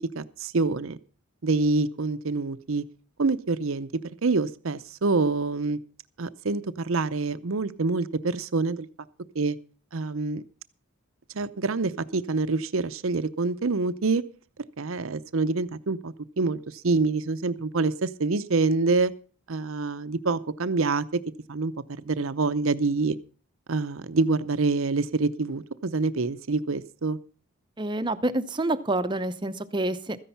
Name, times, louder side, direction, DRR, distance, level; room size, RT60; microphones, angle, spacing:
voice 1, 0.1-1.0 1.4-2.8 3.2-3.9 4.2-5.8 6.2-8.9 9.3-9.6 9.9-10.4 11.3-14.2 14.8-19.1 19.5-21.2 21.5-21.7 22.0-23.2 23.7-27.2, right 3 dB, 65° right, 14 dB, 0.7 m, -26 dB
voice 2, 27.8-30.2, right 2 dB, 20° right, 11 dB, 0.7 m, -27 dB
14.0 x 10.0 x 5.6 m, 0.39 s
head